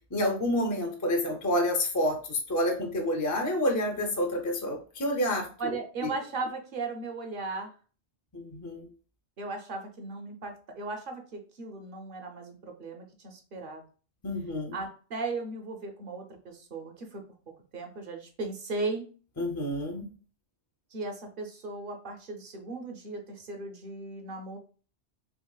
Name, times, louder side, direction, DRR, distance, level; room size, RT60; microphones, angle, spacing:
voice 1, 0.1-6.1 8.3-8.9 14.2-14.8 19.4-20.0, left 1 dB, 25° left, 1 dB, 0.4 m, -29 dB
voice 2, 5.6-7.7 9.4-13.8 14.7-17.2 17.7-19.0 20.9-24.6, right 3 dB, 55° right, 4 dB, 0.7 m, -37 dB
3.7 x 2.8 x 2.3 m, 0.38 s
omnidirectional pair, 1.1 m